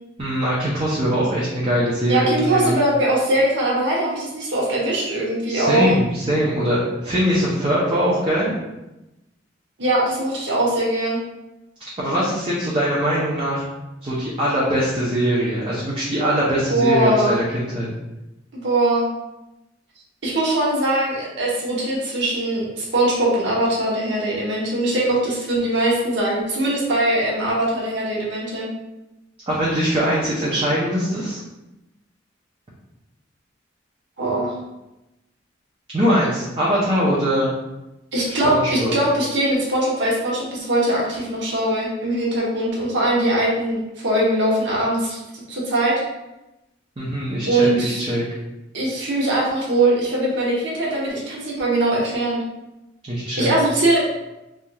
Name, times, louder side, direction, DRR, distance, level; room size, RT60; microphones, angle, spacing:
voice 1, 0.2-2.7 5.5-8.5 12.0-13.6 14.0-17.9 29.5-31.4 35.9-37.5 38.4-38.9 47.0-48.2 53.1-53.5, equal, 25° right, -7 dB, 0.5 m, -22 dB
voice 2, 2.1-5.9 9.8-11.2 16.7-17.4 18.5-19.1 20.2-28.7 34.2-34.5 38.1-45.9 47.5-48.0 48.7-52.4 53.4-54.0, right 1 dB, 65° right, -5 dB, 1.0 m, -21 dB
3.3 x 2.7 x 2.3 m, 0.97 s
head